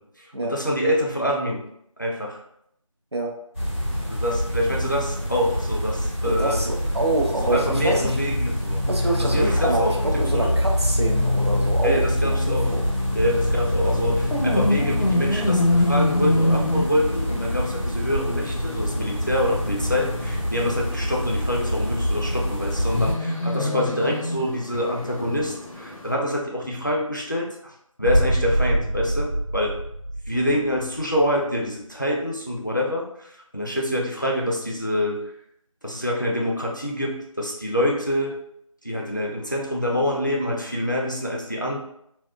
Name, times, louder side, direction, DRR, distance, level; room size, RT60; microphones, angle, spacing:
voice 1, 0.0-1.6 2.0-2.4 4.1-6.6 7.4-8.8 9.2-10.6 11.8-12.8 13.1-29.8 30.3-35.3 35.8-38.4 38.8-41.8, equal, 35° left, -1 dB, 0.4 m, -26 dB
sound 1, 3.5-23.1, left 1 dB, 25° right, 0.9 m, -25 dB
voice 2, 6.2-8.2 8.9-12.8 23.5-24.1, right 2 dB, 50° right, 1 dB, 0.5 m, -27 dB
sound 2, 12.6-26.1, left 1 dB, 80° left, 0.7 m, -27 dB
Boom, 28.0-31.0, right 1 dB, 85° right, 1.0 m, -24 dB
3.5 x 2.2 x 2.3 m, 0.74 s
figure-of-eight pair, 175°, 18 cm